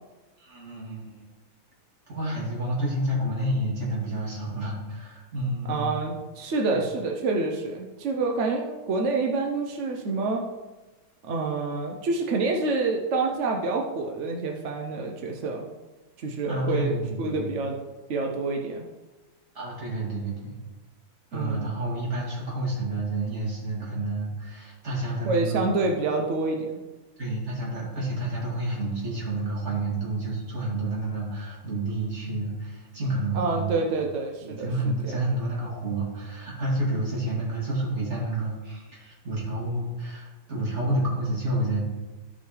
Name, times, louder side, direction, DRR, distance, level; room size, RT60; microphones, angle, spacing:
voice 1, 0.4-1.2 2.1-6.0 16.5-17.5 19.5-20.5 21.3-25.7 27.2-33.7 34.4-41.8, right 1 dB, 35° right, -5 dB, 2.8 m, -29 dB
voice 2, 5.7-10.4 11.2-15.6 16.2-17.8 18.1-18.8 21.3-21.6 25.3-26.8 33.3-34.7 35.0-35.2, right 3 dB, 60° right, 1 dB, 0.7 m, -27 dB
13.5 x 5.5 x 3.2 m, 1.2 s
omnidirectional pair, 2.1 m